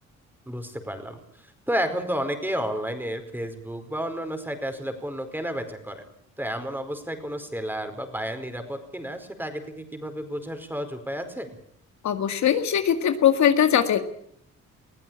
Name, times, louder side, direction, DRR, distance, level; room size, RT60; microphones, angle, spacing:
voice 1, 0.5-6.0 6.4-11.5, equal, 5° right, 8 dB, 4.8 m, -31 dB
voice 2, 12.0-14.0, left 9 dB, 65° left, 8 dB, 2.1 m, -21 dB
21.5 x 15.5 x 8.9 m, 0.69 s
cardioid pair, 90°, 30 cm